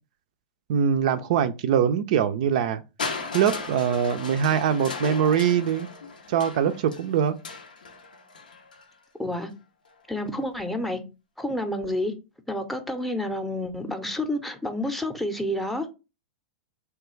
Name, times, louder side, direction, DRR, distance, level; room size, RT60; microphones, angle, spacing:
voice 1, 0.7-2.8 3.3-5.9 6.3-7.3, right 8 dB, 60° right, 0.3 m, -23 dB
Crushing, 3.0-8.9 9.9-10.0, left 4 dB, 90° left, 0.6 m, -36 dB
voice 2, 9.2-9.5 10.1-11.0 11.4-12.1 12.5-15.9, left 1 dB, 5° left, 0.6 m, -29 dB
3.2 x 2.3 x 3.1 m
hypercardioid pair, 105°, 4 cm